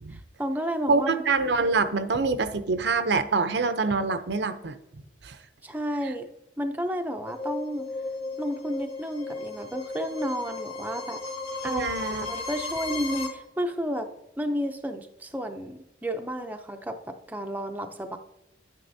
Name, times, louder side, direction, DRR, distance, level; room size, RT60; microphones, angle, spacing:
voice 1, 0.1-1.2 5.6-6.3 6.6-7.9 8.4-11.2 11.6-14.1 14.4-18.2, equal, 10° right, 5 dB, 0.4 m, -32 dB
voice 2, 0.9-4.7 5.2-5.4 11.6-12.3, right 4 dB, 65° right, 10 dB, 0.6 m, -25 dB
sound 1, 7.3-13.3, left 3 dB, 30° left, 1.1 m, -35 dB
10.5 x 9.1 x 2.7 m, 0.88 s
head